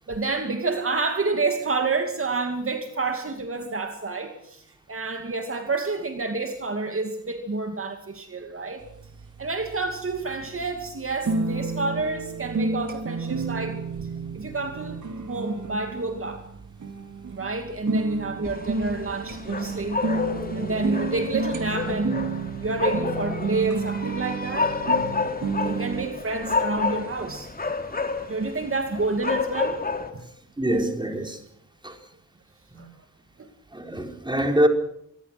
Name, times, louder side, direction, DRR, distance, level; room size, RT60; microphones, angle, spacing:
voice 1, 0.1-8.9 9.4-14.1 14.3-16.5 17.3-20.0 20.5-22.2 22.6-24.7 25.6-27.5 28.3-29.8 30.1-30.3 32.8-32.9 33.4-33.5, right 3 dB, 45° right, 2.6 m, -29 dB
sound 1, 8.8-26.1, right 4 dB, 80° right, 3.1 m, -31 dB
sound 2, 18.4-30.1, left 4 dB, 30° left, 2.9 m, -30 dB
voice 2, 30.6-31.4 31.8-32.0 32.7-32.8 33.7-34.7, right 1 dB, 15° right, 4.3 m, -24 dB
26.5 x 21.5 x 6.2 m
wide cardioid pair, 130°, 30 cm